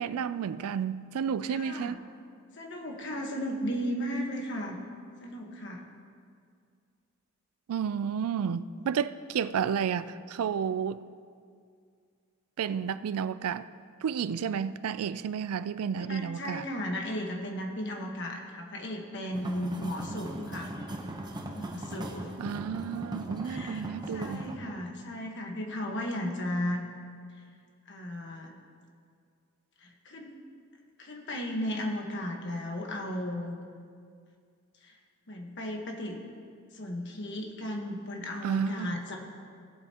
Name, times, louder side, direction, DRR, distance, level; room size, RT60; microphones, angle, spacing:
voice 1, 0.0-2.0 7.7-11.0 12.6-13.7 14.0-16.7 22.4-24.4 38.4-38.9, right 7 dB, 90° right, 0.4 m, -31 dB
voice 2, 1.5-1.9 2.5-4.8 5.2-5.8 16.0-20.7 21.5-22.3 23.4-26.9 27.9-28.5 29.8-30.3 31.0-33.6 34.8-34.9 35.3-36.2 36.7-39.2, equal, 55° left, 1.3 m, -35 dB
sound 1, 19.3-24.5, right 1 dB, 20° right, 0.8 m, -39 dB
17.0 x 8.0 x 2.9 m
head